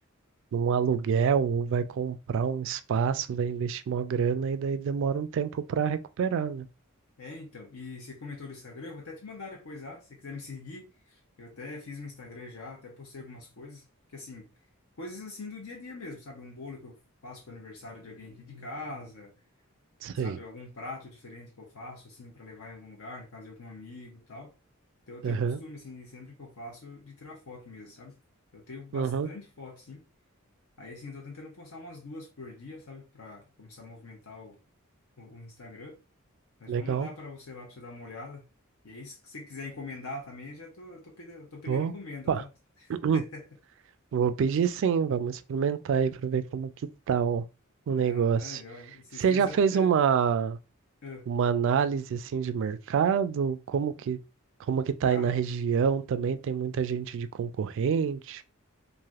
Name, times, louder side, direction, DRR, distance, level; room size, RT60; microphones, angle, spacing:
voice 1, 0.5-6.7 20.0-20.4 25.2-25.6 28.9-29.3 36.7-37.1 41.7-41.9 42.3-42.4 42.9-43.2 44.1-46.7 47.1-47.5 47.9-48.6 49.2-50.6 51.3-54.2 54.7-58.4, right 7 dB, 60° right, 0.3 m, -27 dB
voice 2, 7.2-13.8 14.1-14.5 15.0-19.3 20.1-24.5 25.1-28.2 28.5-30.0 30.8-34.6 35.2-36.0 36.6-38.5 38.8-42.5 42.8-43.4 47.9-49.9 51.0-51.3 55.0-55.3, left 3 dB, 75° left, 0.6 m, -43 dB
3.2 x 2.5 x 2.3 m
head